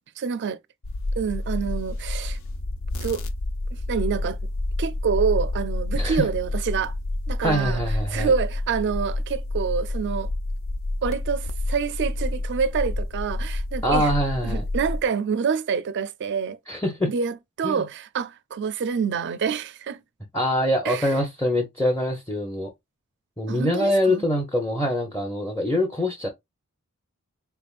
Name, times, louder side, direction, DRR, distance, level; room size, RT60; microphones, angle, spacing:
voice 1, 0.2-0.6 1.2-2.4 3.0-3.2 3.7-4.4 4.8-6.9 7.3-7.8 8.1-10.3 11.0-14.1 14.4-16.6 17.1-20.0 20.8-21.1 23.5-24.2, right 6 dB, 55° right, 0.4 m, -27 dB
sound 1, 0.8-15.0, left 2 dB, 65° left, 0.6 m, -29 dB
voice 2, 5.9-6.3 7.4-8.3 13.8-14.6 16.7-17.1 17.6-17.9 20.3-22.7 23.4-26.3, equal, 10° left, 0.6 m, -24 dB
3.7 x 3.3 x 2.4 m
head